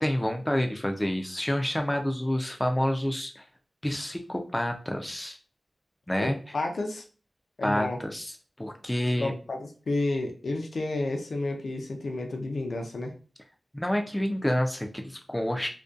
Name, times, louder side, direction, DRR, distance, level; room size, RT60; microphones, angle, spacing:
voice 1, 0.0-3.4 3.8-5.4 6.1-6.4 7.6-8.3 8.6-9.3 13.7-15.7, left 1 dB, 10° left, 4 dB, 0.3 m, -28 dB
voice 2, 6.2-7.0 7.6-8.0 9.2-13.1, left 2 dB, 75° left, 3 dB, 0.4 m, -31 dB
2.6 x 2.1 x 2.3 m, 0.37 s
wide cardioid pair, 95°, 0 cm